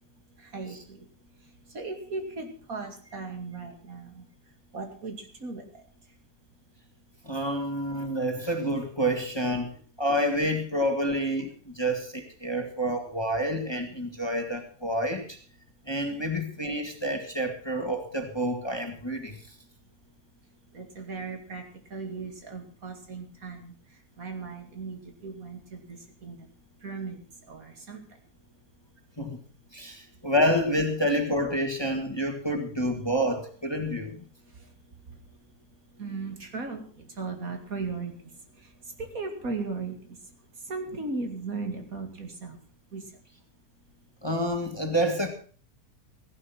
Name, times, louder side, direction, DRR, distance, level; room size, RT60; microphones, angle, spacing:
voice 1, 0.5-1.0 1.7-4.2 4.7-5.6 20.7-21.6 21.9-23.7 24.2-26.4 26.8-27.2 27.5-28.0 36.0-38.1 39.0-39.9 40.7-42.6 42.9-43.0, right 4 dB, 60° right, 4 dB, 2.7 m, -36 dB
voice 2, 7.2-15.4 15.9-19.4 29.2-29.4 29.7-34.2 44.2-45.3, equal, 15° left, 5 dB, 1.8 m, -28 dB
15.5 x 11.0 x 5.8 m, 0.43 s
omnidirectional pair, 1.7 m